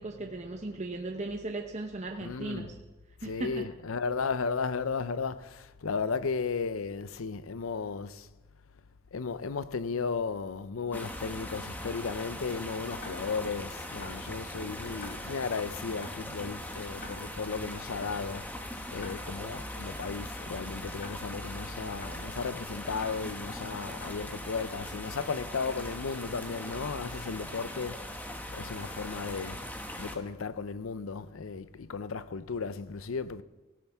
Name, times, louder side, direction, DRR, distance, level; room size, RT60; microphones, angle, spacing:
voice 1, 0.0-2.7 3.2-3.7, right 2 dB, 35° right, 0.9 m, -37 dB
voice 2, 2.2-2.7 3.2-8.3 9.1-29.6 30.0-33.4, left 5 dB, 90° left, 0.6 m, -35 dB
sound 1, 10.9-30.2, left 1 dB, 10° left, 1.1 m, -40 dB
Tick-tock, 13.0-13.1 14.0-14.1 15.0-15.1 16.0-16.1 17.0-17.1 18.0-18.1 19.0-19.1 20.0-20.1 21.0-21.1 22.0-22.1 23.0-23.1 24.0-24.1, left 3 dB, 50° left, 1.9 m, -45 dB
17.0 x 15.0 x 3.5 m
head